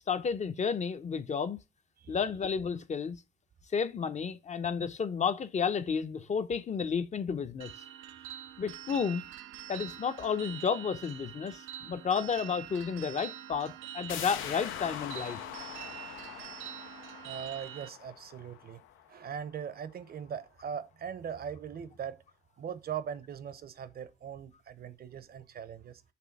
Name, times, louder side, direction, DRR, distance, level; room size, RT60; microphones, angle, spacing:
voice 1, 0.1-1.6 2.1-3.2 3.7-7.7 8.6-9.2 9.7-15.4, left 6 dB, 35° left, 0.6 m, -32 dB
sound 1, 7.6-17.9, right 12 dB, 85° right, 0.5 m, -45 dB
sound 2, 14.1-19.6 19.9-20.0, left 13 dB, 80° left, 0.4 m, -43 dB
voice 2, 17.2-18.8 19.1-22.2 22.6-26.0, right 8 dB, 50° right, 0.7 m, -40 dB
6.1 x 3.3 x 4.6 m
cardioid pair, 90°, 20 cm